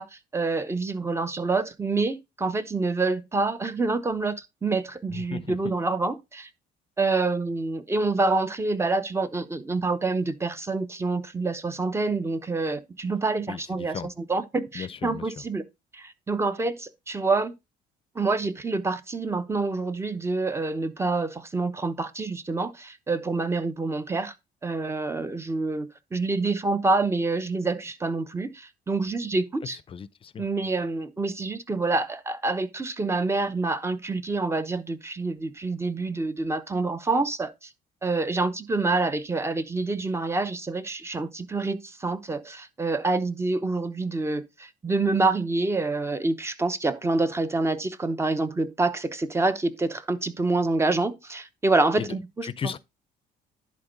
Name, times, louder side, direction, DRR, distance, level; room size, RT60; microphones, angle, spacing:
voice 1, 0.0-6.5 7.0-15.7 15.9-17.5 18.1-24.3 24.6-29.8 30.4-37.7 38.0-52.7, right 3 dB, 15° right, 0.8 m, -27 dB
voice 2, 5.1-5.7 13.5-14.1 14.7-15.3 29.9-30.5 52.0-52.2 52.4-52.8, left 7 dB, 30° left, 0.6 m, -35 dB
11.0 x 4.4 x 3.9 m
cardioid pair, 110°, 17 cm